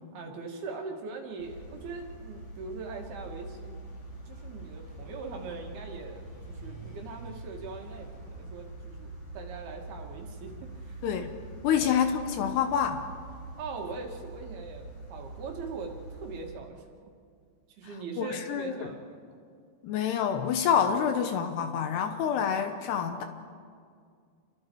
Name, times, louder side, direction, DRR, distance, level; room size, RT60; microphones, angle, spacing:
voice 1, 0.1-3.8 4.3-11.0 11.8-12.0 13.6-17.1 17.8-19.4, right 4 dB, 65° right, 2 dB, 3.7 m, -41 dB
sound 1, 1.4-16.5, right 2 dB, 30° left, 3.2 m, -44 dB
voice 2, 11.0-11.3 11.6-13.1 18.2-18.9 19.8-23.2, left 8 dB, 75° left, 7 dB, 2.9 m, -27 dB
29.0 x 23.5 x 4.7 m, 2.2 s
omnidirectional pair, 5.0 m